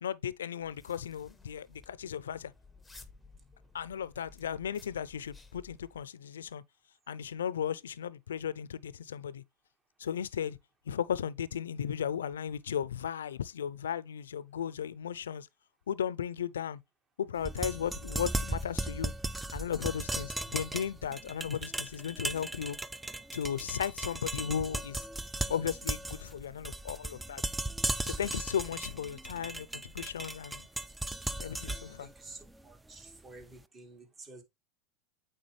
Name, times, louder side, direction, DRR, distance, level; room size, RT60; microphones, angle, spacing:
voice 1, 0.0-2.5 3.7-6.6 7.1-9.4 10.0-10.6 10.9-15.5 15.9-16.8 17.2-19.1 19.5-22.8 23.3-25.0 25.5-27.4 28.0-30.7 31.4-32.1, left 8 dB, 85° left, 0.4 m, -35 dB
sound 1, 0.6-6.0, left 3 dB, 5° left, 0.9 m, -56 dB
sound 2, 17.4-33.4, right 2 dB, 10° right, 0.4 m, -37 dB
voice 2, 32.0-34.4, right 3 dB, 25° right, 1.7 m, -51 dB
8.6 x 3.8 x 3.2 m
hypercardioid pair, 95°, 0 cm